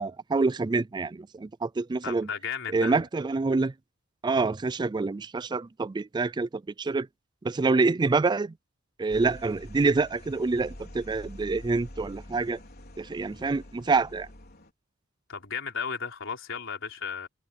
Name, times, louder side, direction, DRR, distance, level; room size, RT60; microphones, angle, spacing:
voice 1, 0.0-2.3 2.7-3.7 4.2-6.5 6.8-7.1 7.4-8.5 9.0-12.6 13.0-14.3, right 3 dB, 20° right, 0.3 m, -26 dB
voice 2, 2.0-3.0 15.3-17.3, left 6 dB, 65° left, 4.3 m, -34 dB
sound 1, 9.1-14.7, left 1 dB, 50° left, 4.6 m, -46 dB
head